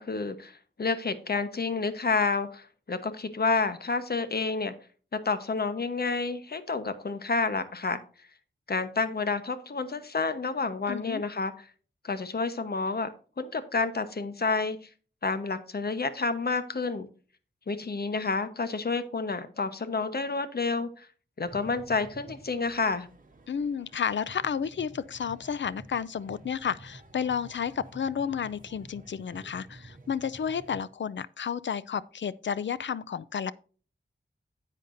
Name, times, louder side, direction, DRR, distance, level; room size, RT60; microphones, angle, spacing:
voice 1, 0.0-4.7 5.2-8.0 8.7-11.7 12.0-13.1 13.4-14.8 15.2-17.1 17.7-21.1 21.4-23.1, left 4 dB, 55° left, 1.1 m, -29 dB
voice 2, 10.9-11.2 23.5-33.5, left 7 dB, 70° left, 0.5 m, -31 dB
sound 1, 21.4-30.8, right 2 dB, 45° right, 1.7 m, -50 dB
10.5 x 8.3 x 2.6 m
wide cardioid pair, 80°, 20 cm